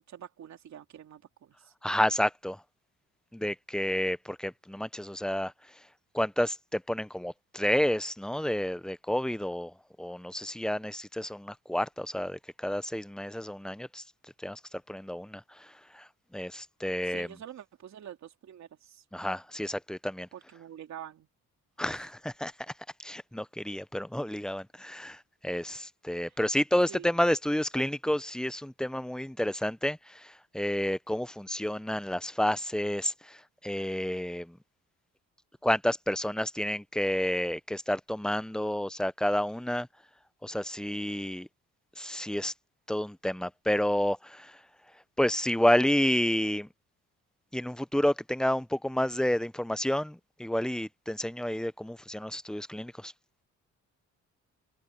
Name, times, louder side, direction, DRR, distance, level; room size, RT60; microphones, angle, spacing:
voice 1, 0.1-1.7 17.0-19.0 20.3-21.3 21.9-22.0 26.9-27.1, right 10 dB, 65° right, 3.3 m, -46 dB
voice 2, 1.8-2.6 3.3-5.5 6.1-9.7 10.0-14.0 14.4-14.6 14.9-17.3 19.1-20.3 21.8-22.5 23.0-34.6 35.6-39.9 40.4-41.5 42.0-42.5 42.9-44.6 45.2-46.7 47.5-53.1, left 1 dB, ahead, 0.6 m, -30 dB
cardioid pair, 90°, 30 cm